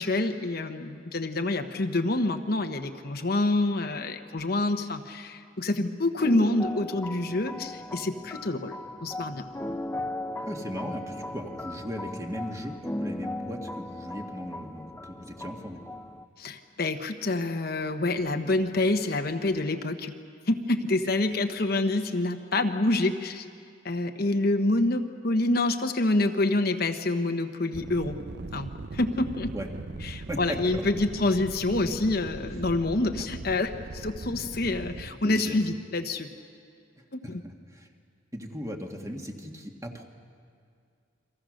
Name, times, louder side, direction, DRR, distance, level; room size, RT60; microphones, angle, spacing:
voice 1, 0.0-9.4 16.4-20.2 20.5-23.4 23.8-28.2 28.5-29.5 30.0-36.3 37.1-37.4, left 2 dB, 50° left, 6 dB, 1.0 m, -27 dB
sound 1, 6.2-16.2, left 1 dB, 10° left, 0.6 m, -37 dB
voice 2, 10.5-15.8 29.5-29.7 30.3-30.8 35.0-35.6 37.0-37.9 38.3-40.0, equal, 15° right, 2 dB, 1.7 m, -38 dB
sound 2, 27.7-35.1, right 3 dB, 55° right, 0.6 m, -40 dB
29.5 x 24.0 x 6.4 m, 2.3 s
head